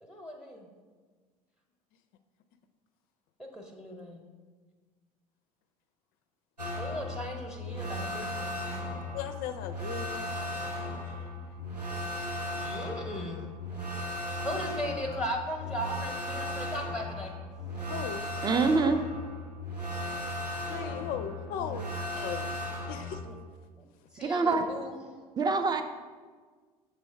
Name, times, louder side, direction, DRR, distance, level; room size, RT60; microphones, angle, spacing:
voice 1, 0.0-0.7 3.4-4.3 6.8-8.9 12.6-13.5 14.4-17.3 21.0-21.8 23.2-23.4 23.8-23.9 24.1-25.1, equal, 5° right, 2 dB, 0.9 m, -38 dB
sound 1, 6.6-23.2, left 1 dB, 90° right, 0.8 m, -36 dB
voice 2, 9.1-11.3 13.4-13.9 17.9-18.3 20.7-22.5 22.9-23.2, left 8 dB, 45° left, 7 dB, 0.4 m, -39 dB
voice 3, 18.4-19.0 24.2-24.6 25.4-25.8, right 4 dB, 20° right, 8 dB, 0.5 m, -25 dB
6.9 x 3.3 x 4.5 m, 1.5 s
figure-of-eight pair, 65°, 20 cm